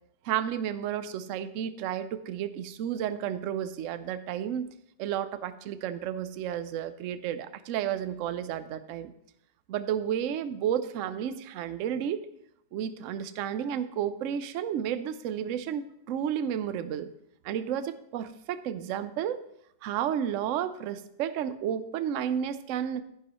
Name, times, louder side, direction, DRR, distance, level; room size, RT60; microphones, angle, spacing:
voice 1, 0.2-4.7 5.0-9.1 9.7-12.2 12.7-17.1 17.4-19.4 19.8-23.0, right 9 dB, 65° right, 12 dB, 0.8 m, -32 dB
11.0 x 10.5 x 3.1 m, 0.75 s
omnidirectional pair, 1.7 m